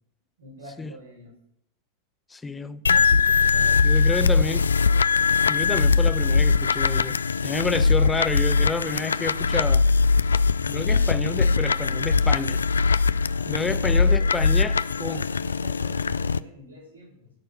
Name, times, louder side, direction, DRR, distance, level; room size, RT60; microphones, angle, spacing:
voice 1, 0.4-1.3 13.2-14.3 14.9-17.3, equal, 70° right, -4 dB, 7.1 m, -46 dB
voice 2, 2.3-4.7 5.5-7.2 7.4-9.8 10.7-12.6 13.5-15.2, left 3 dB, 10° left, 12 dB, 1.0 m, -30 dB
sound 1, 2.9-16.4, left 4 dB, 70° left, 0.5 m, -21 dB
16.5 x 6.6 x 8.2 m, 0.72 s
figure-of-eight pair, 90°, 0 cm